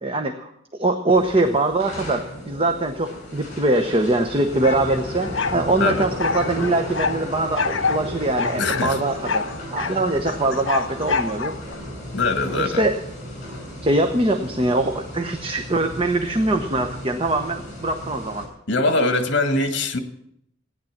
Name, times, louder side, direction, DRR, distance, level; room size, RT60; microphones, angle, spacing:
voice 1, 0.0-9.5 9.7-11.5 12.5-13.0 13.8-18.4, right 2 dB, 30° right, 5 dB, 0.9 m, -22 dB
sound 1, 1.1-18.4, left 1 dB, 40° left, 7.1 m, -35 dB
sound 2, 4.6-5.6 6.2-7.2 7.6-8.0 8.4-10.0 10.2-11.7, left 4 dB, 80° left, 1.2 m, -26 dB
voice 2, 8.6-9.0 9.8-10.0 12.1-12.8 18.7-20.0, left 2 dB, 65° left, 7 dB, 1.7 m, -22 dB
16.5 x 10.0 x 7.3 m, 0.76 s
head